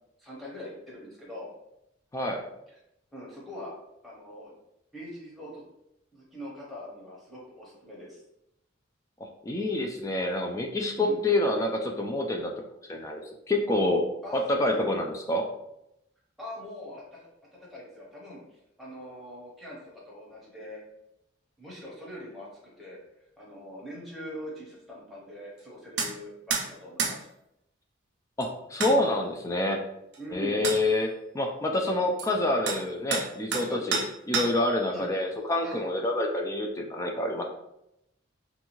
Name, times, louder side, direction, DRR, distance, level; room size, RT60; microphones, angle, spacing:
voice 1, 0.2-1.5 2.7-2.8 3.1-3.7 4.0-4.5 4.9-5.6 6.1-8.2 10.9-11.2 14.2-14.8 16.4-17.2 17.7-20.8 21.6-23.0 23.4-27.3 30.2-30.6 33.7-33.9 34.9-35.1 35.6-35.8, equal, ahead, -6 dB, 0.8 m, -42 dB
voice 2, 9.2-12.5 12.9-13.2 13.5-14.0 14.3-15.5 28.4-29.8 30.3-37.5, left 1 dB, 15° left, 2 dB, 0.3 m, -27 dB
sound 1, 26.0-26.1 26.5-26.7 27.0-27.2 28.4-28.5 28.8-29.0 30.1-30.2 30.6-30.8 32.2-32.3 32.7-32.8 33.1-33.7 33.9-34.7, right 5 dB, 60° right, 0.5 m, -29 dB
2.6 x 2.3 x 3.0 m, 0.84 s
head